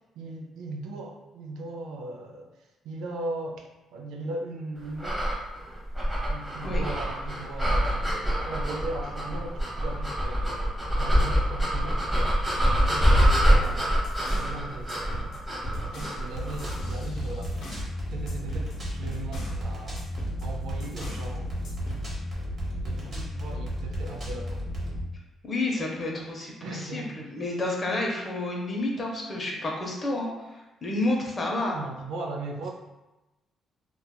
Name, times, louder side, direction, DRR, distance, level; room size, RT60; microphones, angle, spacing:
voice 1, 0.0-2.5 2.8-5.4 6.3-12.0 12.5-15.0 15.8-17.8 18.1-20.1 20.4-21.5 22.8-24.7 26.6-27.3 31.6-32.7, right 2 dB, 85° right, 2 dB, 0.3 m, -38 dB
Panicked Breathing, 5.0-16.9, equal, 10° right, 0.8 m, -25 dB
sound 1, 13.3-14.6 14.9-17.9 18.3-19.6 20.0-21.3 21.6-22.1, right 1 dB, 75° left, 0.6 m, -41 dB
sound 2, 16.3-25.0, equal, 45° right, 0.9 m, -33 dB
voice 2, 25.4-31.8, left 2 dB, 35° left, -1 dB, 0.6 m, -30 dB
2.7 x 2.2 x 2.2 m, 1.0 s
cardioid pair, 90°, 0 cm